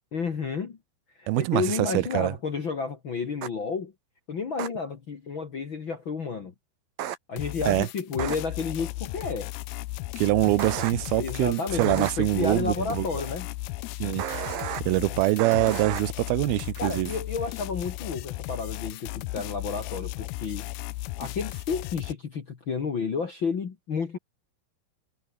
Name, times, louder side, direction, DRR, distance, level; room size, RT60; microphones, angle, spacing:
voice 1, 0.1-0.8 1.2-3.9 4.3-6.5 7.3-9.5 11.2-13.5 15.1-15.2 16.8-20.7 21.2-24.2, left 5 dB, 65° left, 1.2 m, -31 dB
voice 2, 1.3-2.3 7.7-7.9 10.2-13.1 14.0-14.2 14.8-17.1, right 18 dB, 80° right, 2.2 m, -24 dB
sound 1, 3.4-3.5 4.6-4.7 7.0-7.2 8.2-8.4 10.6-10.9 11.8-12.1 14.2-14.8 15.4-16.0, right 11 dB, 60° right, 2.9 m, -32 dB
sound 2, 7.4-22.1, left 20 dB, 90° left, 2.2 m, -35 dB
omnidirectional pair, 5.4 m